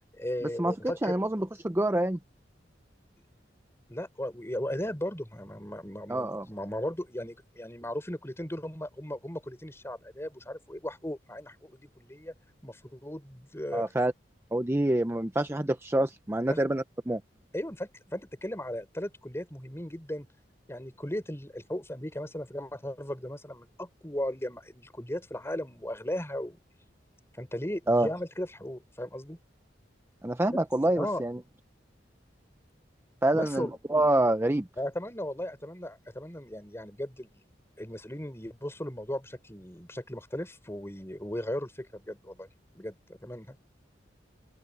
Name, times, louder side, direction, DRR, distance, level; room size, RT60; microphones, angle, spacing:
voice 1, 0.2-1.2 3.9-12.3 12.6-13.9 16.5-16.6 17.5-20.3 20.7-26.6 27.4-29.4 30.4-30.6 31.0-31.2 33.3-33.8 34.8-37.3 37.8-42.5 42.7-43.6, left 1 dB, 15° left, 5.3 m, -36 dB
voice 2, 1.0-2.2 6.1-6.5 13.7-14.1 14.5-17.2 27.9-28.1 30.2-31.4 33.2-34.7, right 1 dB, 15° right, 0.6 m, -26 dB
open air
head